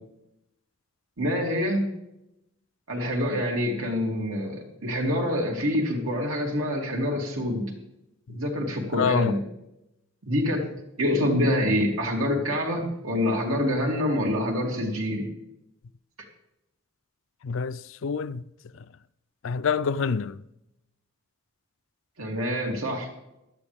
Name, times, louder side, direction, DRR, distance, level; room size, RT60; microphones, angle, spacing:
voice 1, 1.2-1.9 2.9-7.7 8.3-9.4 10.2-10.7 11.0-15.3 22.2-23.1, left 1 dB, 90° right, 3.1 m, -26 dB
voice 2, 8.9-9.3 17.4-18.4 18.7-18.8 19.4-20.4, left 6 dB, 65° left, 0.4 m, -27 dB
16.5 x 12.0 x 3.5 m
head